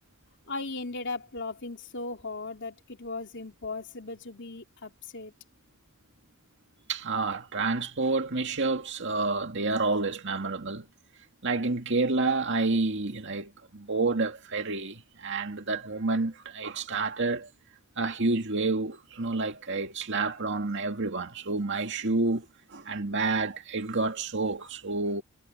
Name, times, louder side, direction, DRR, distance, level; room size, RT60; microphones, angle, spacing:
voice 1, 0.5-5.3, left 3 dB, 55° left, 3.5 m, -37 dB
voice 2, 6.9-10.9 11.4-17.5 18.0-25.2, right 3 dB, 55° right, 2.2 m, -29 dB
head